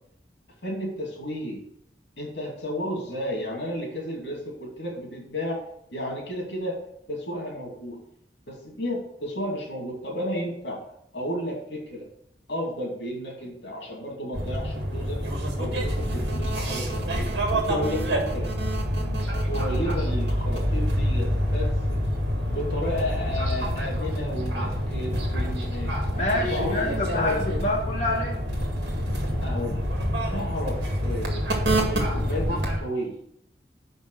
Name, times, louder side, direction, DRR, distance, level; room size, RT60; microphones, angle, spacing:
voice 1, 0.6-1.6 2.2-5.6 5.9-6.8 7.1-8.0 8.5-10.8 11.1-12.1 12.5-15.2 15.6-17.1 17.5-18.5 18.9-19.2 19.5-22.0 22.5-25.9 26.5-26.8 27.1-27.6 29.4-29.8 30.3-31.5 31.9-33.1, equal, 80° left, -2 dB, 2.5 m, -32 dB
sound 1, 14.3-32.8, equal, 80° right, 1.9 m, -27 dB
voice 2, 26.2-28.4, left 1 dB, 40° left, -5 dB, 2.1 m, -27 dB
6.1 x 5.2 x 6.3 m, 0.72 s
head